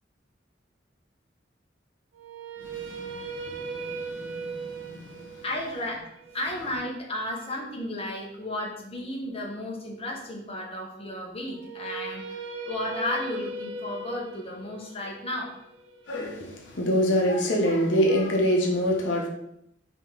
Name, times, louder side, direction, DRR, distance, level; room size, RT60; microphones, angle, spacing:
sound 1, 2.1-8.3 11.5-17.6, right 3 dB, 80° right, 0.5 m, -39 dB
voice 1, 2.6-5.4 16.1-19.3, equal, 75° left, 0 dB, 0.8 m, -26 dB
voice 2, 5.4-6.0 6.3-12.4 12.6-15.5, left 1 dB, 30° left, -2 dB, 1.0 m, -33 dB
5.0 x 2.9 x 3.7 m, 0.77 s
head